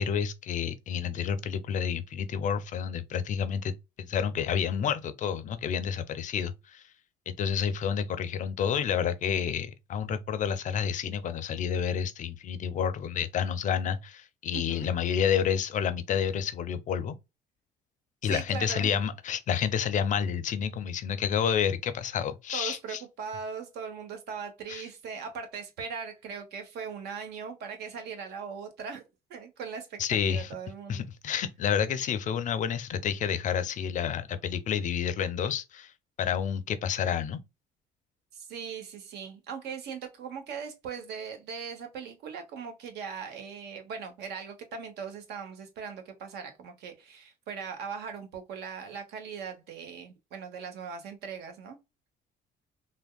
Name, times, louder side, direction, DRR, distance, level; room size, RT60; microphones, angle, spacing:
voice 1, 0.0-3.7 4.0-6.8 7.3-17.2 18.2-23.0 24.7-24.8 30.0-30.5 30.9-35.9 36.2-37.4, left 8 dB, 50° left, 0.4 m, -29 dB
voice 2, 14.5-14.9 18.3-19.0 22.5-29.0 29.3-31.1 38.3-51.8, right 6 dB, 75° right, 0.9 m, -39 dB
3.4 x 2.1 x 2.2 m
cardioid pair, 110°, 17 cm